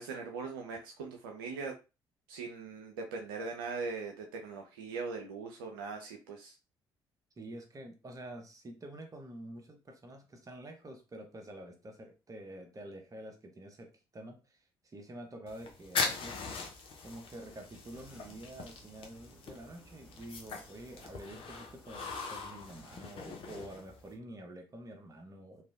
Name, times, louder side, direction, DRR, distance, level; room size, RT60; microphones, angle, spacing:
voice 1, 0.0-1.8 2.3-6.5, right 4 dB, 70° right, 3 dB, 0.4 m, -40 dB
voice 2, 7.4-16.4 17.0-25.6, right 1 dB, 30° right, 5 dB, 0.9 m, -48 dB
sound 1, 15.5-24.1, left 4 dB, 50° left, 0.7 m, -41 dB
Sliding door, 17.0-24.2, right 1 dB, 5° right, 1.7 m, -61 dB
3.2 x 2.6 x 2.4 m, 0.29 s
figure-of-eight pair, 45°, 12 cm